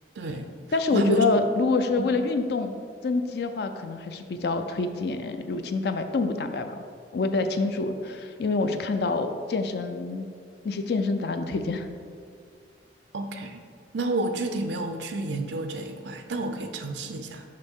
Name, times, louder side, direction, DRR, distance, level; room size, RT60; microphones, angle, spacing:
voice 1, 0.2-0.5 0.9-1.3 2.0-2.1 13.1-13.6 13.9-17.4, right 2 dB, 75° right, 6 dB, 0.5 m, -30 dB
voice 2, 0.7-2.7 3.0-6.8 7.1-10.3 10.6-11.9, left 3 dB, 60° left, 8 dB, 0.4 m, -26 dB
6.5 x 5.4 x 3.6 m, 2.2 s
head